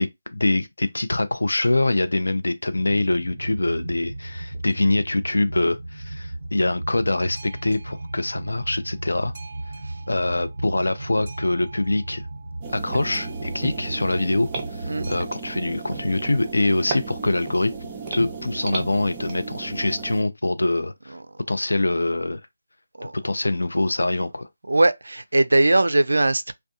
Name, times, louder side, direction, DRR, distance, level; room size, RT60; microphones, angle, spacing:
voice 1, 0.0-9.3 10.1-12.2 12.7-17.7 18.1-21.1 21.5-22.4 23.2-24.5, left 2 dB, 85° left, 0.4 m, -24 dB
Boat Water vehicle, 2.8-15.3, right 2 dB, 45° right, 0.9 m, -35 dB
sound 1, 12.6-20.2, right 4 dB, 20° right, 0.6 m, -34 dB
voice 2, 24.7-26.5, right 2 dB, 85° right, 0.3 m, -20 dB
2.4 x 2.2 x 2.7 m
figure-of-eight pair, 165°, 0 cm